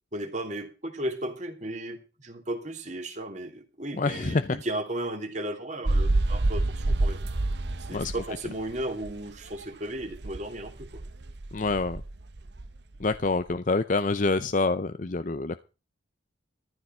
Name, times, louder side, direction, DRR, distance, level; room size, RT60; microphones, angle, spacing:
voice 1, 0.1-7.2 7.8-11.0, right 1 dB, 35° right, 4 dB, 2.8 m, -35 dB
voice 2, 4.0-4.6 7.9-8.1 11.5-12.0 13.0-15.6, left 3 dB, 40° left, 10 dB, 0.6 m, -26 dB
sound 1, 5.9-9.7 10.0-13.4, right 2 dB, 55° right, 0.8 m, -28 dB
14.0 x 12.0 x 4.5 m, 0.33 s
head